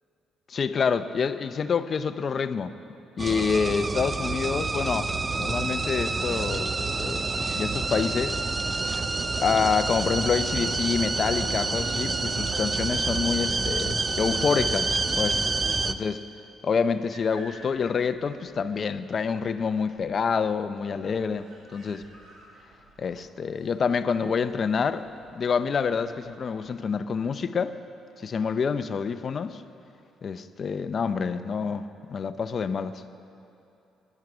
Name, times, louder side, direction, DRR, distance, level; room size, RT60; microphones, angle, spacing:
voice 1, 0.5-2.7 3.2-5.1 5.4-7.2 7.5-8.4 9.3-15.4 15.8-16.2 16.6-22.0 23.0-25.0 25.3-27.8 28.2-29.6 30.2-33.0, left 6 dB, 35° left, 11 dB, 0.6 m, -27 dB
sound 1, 3.2-15.9, right 3 dB, 20° right, 0.4 m, -28 dB
sound 2, 16.9-26.8, equal, 60° right, 4.0 m, -54 dB
22.0 x 11.0 x 6.1 m, 2.8 s
cardioid pair, 155°, 0 cm